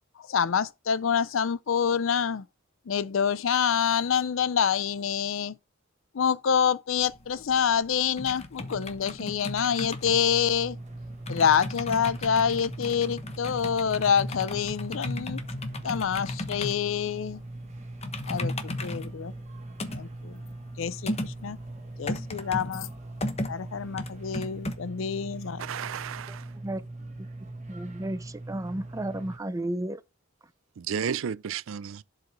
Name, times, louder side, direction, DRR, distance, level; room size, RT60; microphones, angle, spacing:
voice 1, 0.2-2.4 2.9-5.5 6.1-10.8 11.3-15.4 15.8-17.4 18.3-19.3 19.9-20.4 20.8-21.6 22.0-22.9 23.5-25.6, left 7 dB, 70° left, 0.5 m, -27 dB
sound 1, 7.0-24.7, left 1 dB, 30° left, 1.0 m, -36 dB
sound 2, 10.0-29.4, right 2 dB, 35° right, 1.4 m, -41 dB
voice 2, 25.6-26.5 30.8-32.0, right 7 dB, 75° right, 0.4 m, -32 dB
voice 3, 27.7-30.0, right 1 dB, 15° right, 0.5 m, -33 dB
11.5 x 4.9 x 3.1 m
head